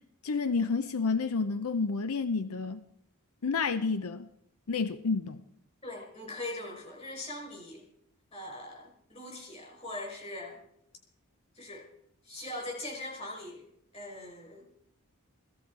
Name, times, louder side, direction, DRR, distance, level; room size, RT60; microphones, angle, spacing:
voice 1, 0.2-2.8 3.4-4.3 4.7-5.4, left 4 dB, 80° left, 11 dB, 0.7 m, -30 dB
voice 2, 5.8-7.8 8.3-10.6 11.5-11.8 12.2-13.6 13.9-14.7, left 1 dB, 30° left, 1 dB, 5.1 m, -41 dB
16.5 x 15.0 x 4.8 m, 0.75 s
head